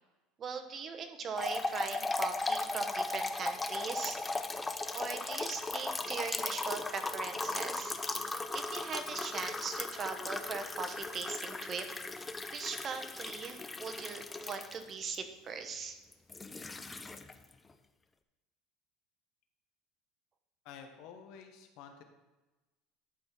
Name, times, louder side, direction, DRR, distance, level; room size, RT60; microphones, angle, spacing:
voice 1, 0.4-4.2 4.9-7.9 8.5-11.9 12.5-16.0, right 5 dB, 35° right, 8 dB, 0.9 m, -40 dB
sound 1, 1.4-15.1 16.1-17.5, left 3 dB, 15° left, 0.5 m, -37 dB
voice 2, 20.6-22.0, left 7 dB, 65° left, 5 dB, 1.2 m, -50 dB
11.5 x 4.2 x 4.5 m, 1.1 s
supercardioid pair, 125°, 0 cm